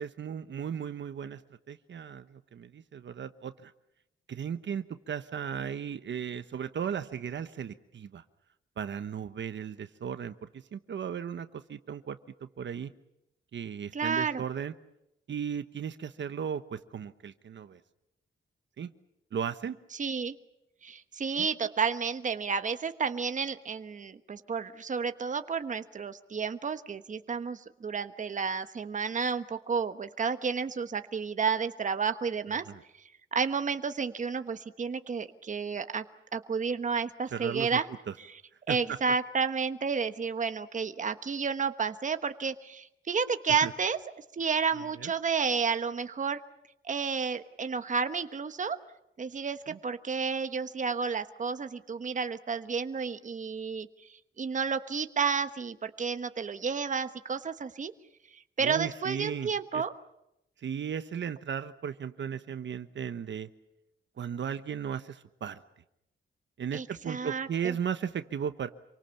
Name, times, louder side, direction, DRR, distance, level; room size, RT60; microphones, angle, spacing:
voice 1, 0.0-1.4 1.7-3.7 4.3-8.2 8.8-12.9 13.5-14.7 15.3-17.8 18.8-18.9 19.3-19.8 21.4-21.5 32.7-32.8 37.3-37.8 38.1-38.2 38.7-39.0 43.5-43.7 45.0-45.1 49.7-49.8 58.6-59.8 60.6-63.5 64.2-65.6 66.6-68.7, right 8 dB, 65° right, 11 dB, 1.1 m, -36 dB
voice 2, 13.9-14.4 19.9-20.4 20.8-32.6 33.3-36.0 36.3-37.9 38.7-44.0 44.3-46.4 46.8-48.8 49.2-53.9 54.4-57.9 58.6-59.9 66.7-67.7, right 5 dB, 40° right, 10 dB, 1.2 m, -31 dB
27.5 x 24.5 x 7.2 m, 0.85 s
wide cardioid pair, 155°, 20 cm